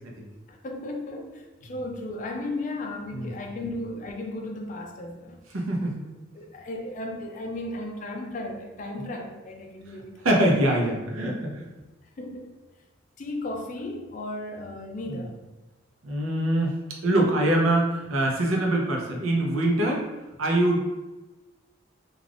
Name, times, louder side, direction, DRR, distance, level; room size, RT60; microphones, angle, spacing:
voice 1, 0.5-5.4 5.8-5.9 6.3-10.3 12.2-12.5 13.2-15.4, left 1 dB, 40° left, 3 dB, 0.3 m, -35 dB
voice 2, 5.5-6.0 10.2-11.7 15.1-15.2 16.0-16.8 17.0-20.0 20.4-20.8, right 1 dB, 90° right, -1 dB, 0.6 m, -24 dB
2.4 x 2.3 x 3.3 m, 1.1 s
head